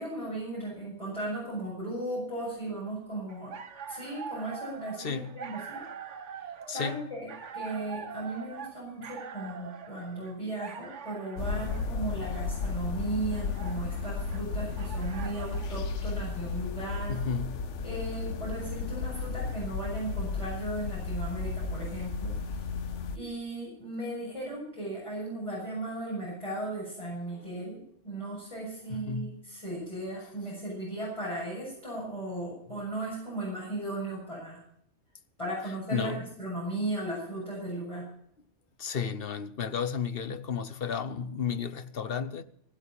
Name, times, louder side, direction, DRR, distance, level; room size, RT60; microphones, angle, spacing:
voice 1, 0.0-3.5 3.9-5.8 6.3-7.3 7.5-17.2 17.8-22.7 23.1-27.8 28.0-34.6 35.4-38.1, right 1 dB, 25° left, 7.4 m, -36 dB
sound 1, 3.3-15.7, right 6 dB, 85° right, 1.4 m, -44 dB
voice 2, 5.0-5.5 6.7-7.1 17.1-17.6 21.3-21.4 27.3-27.4 28.9-29.4 35.9-36.2 38.8-42.4, left 6 dB, 55° left, 1.1 m, -33 dB
sound 2, 11.4-23.2, left 4 dB, 85° left, 1.2 m, -34 dB
17.5 x 8.3 x 8.7 m
omnidirectional pair, 1.2 m